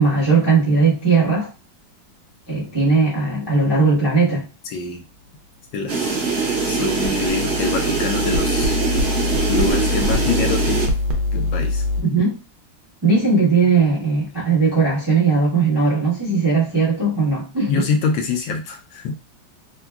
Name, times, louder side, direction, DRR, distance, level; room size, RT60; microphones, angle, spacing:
voice 1, 0.0-1.5 2.5-4.5 12.0-12.4 13.0-17.8, right 4 dB, 20° right, 0.7 m, -18 dB
voice 2, 4.7-5.0 5.7-6.1 6.6-8.8 9.5-10.9 11.3-11.8 17.7-19.2, left 5 dB, 75° left, 1.3 m, -25 dB
sound 1, 5.9-10.9, right 4 dB, 85° right, 0.5 m, -23 dB
sound 2, 6.1-12.0, left 2 dB, 70° right, 1.0 m, -24 dB
3.7 x 2.2 x 2.3 m
omnidirectional pair, 2.1 m